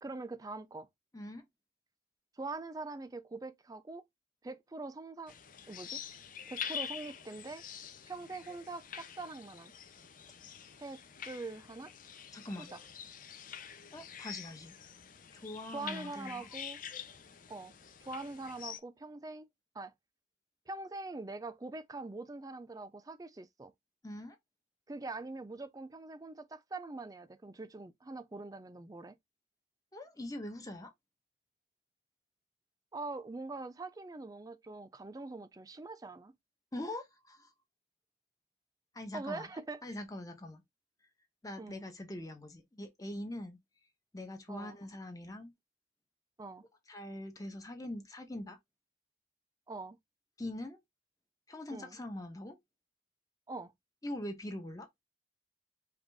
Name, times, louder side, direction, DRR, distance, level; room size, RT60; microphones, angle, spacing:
voice 1, 0.0-0.9 2.4-4.0 4.4-5.3 5.7-6.0 6.5-7.6 8.1-9.7 10.8-11.9 12.7-12.8 15.7-16.8 17.5-17.7 18.0-19.5 19.7-19.9 20.7-23.7 24.9-29.2 32.9-36.3 39.1-39.8 41.6-41.8 44.5-44.8 46.4-46.6 49.7-50.0 51.7-52.0 53.5-53.7, right 3 dB, 20° right, 0.4 m, -43 dB
voice 2, 1.1-1.4 12.3-12.7 13.9-14.7 15.3-16.5 24.0-24.4 29.9-30.9 36.7-37.5 38.9-39.5 39.8-40.6 41.4-43.6 44.1-45.5 46.9-48.6 50.4-50.8 51.5-52.6 54.0-54.9, left 1 dB, 20° left, 0.9 m, -43 dB
sound 1, 5.3-18.8, left 8 dB, 45° left, 0.6 m, -46 dB
5.0 x 2.6 x 3.4 m
head